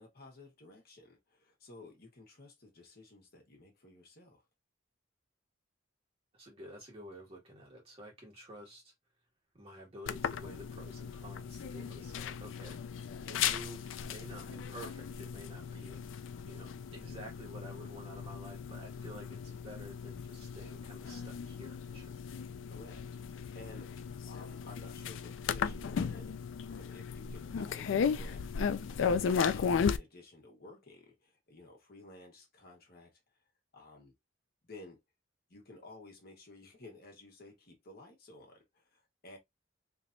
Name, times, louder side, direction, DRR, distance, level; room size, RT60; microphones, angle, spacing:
voice 1, 0.0-4.4 13.2-13.6 22.7-34.1 34.6-35.0 35.5-39.4, left 2 dB, 55° left, 1.4 m, -54 dB
voice 2, 6.3-8.9 9.5-16.2 16.5-22.1, equal, 30° right, 1.8 m, -50 dB
sound 1, 10.1-30.0, left 6 dB, 85° left, 0.4 m, -36 dB
3.4 x 2.9 x 2.5 m
head